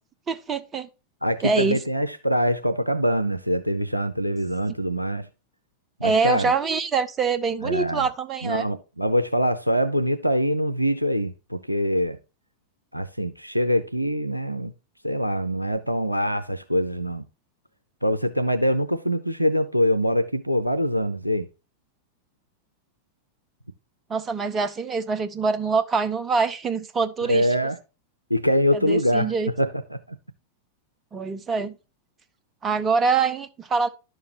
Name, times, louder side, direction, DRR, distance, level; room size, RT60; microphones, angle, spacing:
voice 1, 0.3-0.9 1.4-1.8 6.0-8.7 24.1-27.5 28.7-29.5 31.1-31.7 32.6-33.9, right 4 dB, 20° right, 0.9 m, -24 dB
voice 2, 1.2-5.3 6.0-6.5 7.6-8.1 8.4-12.2 12.9-14.7 15.0-17.2 18.0-21.5 27.2-27.8 28.3-29.3 29.6-30.0, equal, 90° right, 0.5 m, -24 dB
11.0 x 6.6 x 2.9 m
figure-of-eight pair, 90°, 0 cm